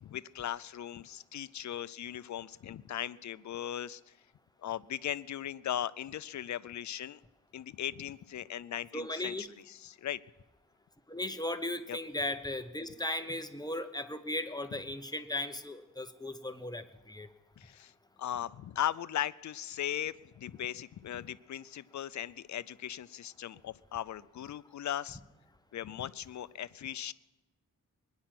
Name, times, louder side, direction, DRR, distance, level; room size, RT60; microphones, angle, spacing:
voice 1, 0.0-4.1 4.6-7.2 7.5-10.2 11.9-12.0 17.6-17.9 18.2-25.2 25.7-27.1, left 11 dB, 60° left, 17 dB, 0.5 m, -38 dB
voice 2, 8.9-9.5 11.1-17.3, left 1 dB, 10° left, 8 dB, 0.8 m, -37 dB
22.5 x 10.5 x 5.9 m, 1.0 s
wide cardioid pair, 130°, 32 cm